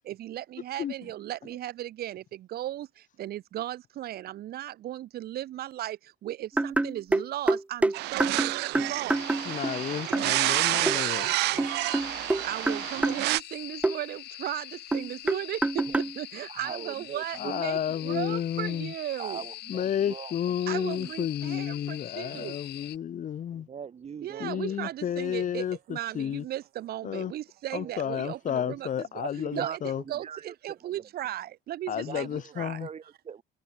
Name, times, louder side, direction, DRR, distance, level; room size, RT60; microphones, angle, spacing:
voice 1, 0.0-9.2 12.4-19.4 20.7-22.6 24.2-29.1 29.5-29.8 30.1-32.8, right 13 dB, 65° right, 2.2 m, -36 dB
sound 1, 6.6-9.8 10.1-10.3 10.9-11.0 11.6-13.2 13.8-14.0 14.9-16.2, right 2 dB, 10° right, 0.4 m, -26 dB
sound 2, 7.9-13.4, right 20 dB, 90° right, 1.3 m, -29 dB
sound 3, 9.1-23.0, left 16 dB, 80° left, 5.2 m, -43 dB
voice 2, 9.4-11.3 17.4-18.9 19.7-23.7 24.4-26.4 27.0-27.3 27.7-30.0 31.9-32.9, left 9 dB, 50° left, 2.3 m, -31 dB
voice 3, 16.5-18.3 19.2-20.3 20.7-21.1 23.5-24.9 25.4-25.5 27.7-27.9 28.3-28.7 29.2-30.9 32.1-32.5 32.8-33.4, right 7 dB, 40° right, 2.8 m, -42 dB
cardioid pair, 110°, 17 cm